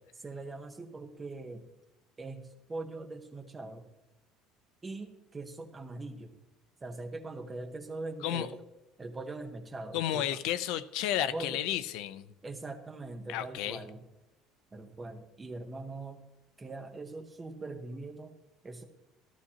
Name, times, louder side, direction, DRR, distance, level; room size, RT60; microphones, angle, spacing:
voice 1, 0.2-1.7 2.2-3.8 4.8-6.4 6.8-8.6 9.0-10.3 11.3-11.6 12.4-14.0 14.7-16.2 16.6-18.3 18.6-18.8, right 2 dB, 15° right, 5 dB, 0.9 m, -41 dB
voice 2, 9.9-12.3 13.3-13.8, left 12 dB, 60° left, 13 dB, 0.5 m, -32 dB
14.0 x 12.5 x 2.9 m, 0.95 s
cardioid pair, 180°, 0 cm